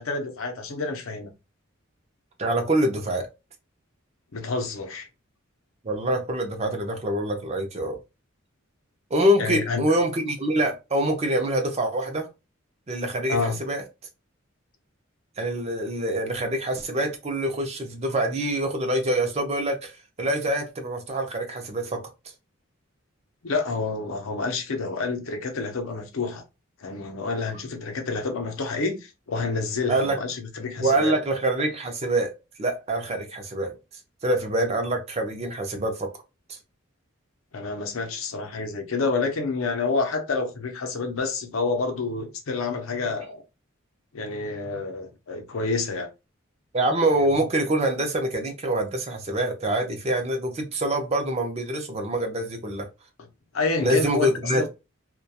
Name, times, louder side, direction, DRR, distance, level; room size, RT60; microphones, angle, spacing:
voice 1, 0.0-1.3 4.3-5.1 9.4-9.8 13.3-13.6 23.4-26.4 26.8-31.1 37.5-43.4 44.1-46.1 53.5-54.7, left 3 dB, 85° left, 0.6 m, -28 dB
voice 2, 2.4-3.3 5.8-8.0 9.1-12.3 12.9-13.8 15.4-22.0 29.9-30.2 30.8-32.3 32.6-33.7 34.2-36.1 36.5-36.6 46.7-52.9 53.8-54.7, right 1 dB, 30° right, 0.5 m, -25 dB
2.3 x 2.2 x 2.7 m
head